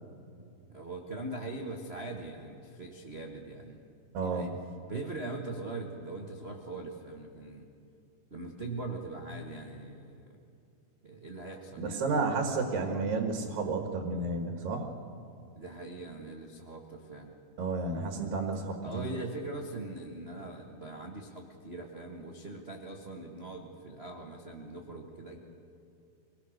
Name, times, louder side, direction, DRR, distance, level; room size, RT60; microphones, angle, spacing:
voice 1, 0.7-3.8 4.2-4.5 4.9-7.6 8.3-10.2 11.0-12.0 15.5-17.3 18.8-25.4, right 2 dB, 65° right, 0 dB, 0.6 m, -41 dB
voice 2, 4.1-4.6 11.8-14.9 17.6-19.1, right 3 dB, 90° right, 3 dB, 3.4 m, -31 dB
24.5 x 18.0 x 6.4 m, 2.7 s
omnidirectional pair, 3.9 m